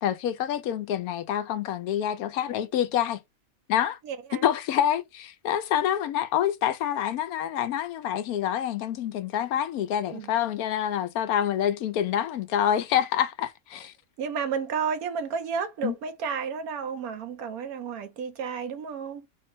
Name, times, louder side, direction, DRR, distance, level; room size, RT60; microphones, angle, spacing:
voice 1, 0.0-3.2 3.7-4.0 4.4-13.9 15.8-15.9, left 10 dB, 85° left, 1.1 m, -27 dB
voice 2, 4.0-4.5 10.1-10.3 14.2-19.3, right 6 dB, 80° right, 1.2 m, -32 dB
3.7 x 2.1 x 4.4 m
omnidirectional pair, 1.5 m